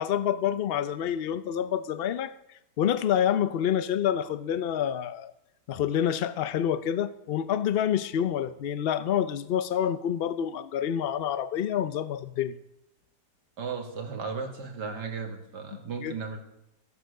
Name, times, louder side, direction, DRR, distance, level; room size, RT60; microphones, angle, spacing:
voice 1, 0.0-2.3 2.8-5.3 5.7-12.5 16.0-16.1, left 9 dB, 65° left, 14 dB, 0.5 m, -27 dB
voice 2, 13.6-16.4, right 5 dB, 80° right, 4 dB, 2.4 m, -35 dB
15.0 x 8.5 x 6.5 m, 0.83 s
omnidirectional pair, 1.8 m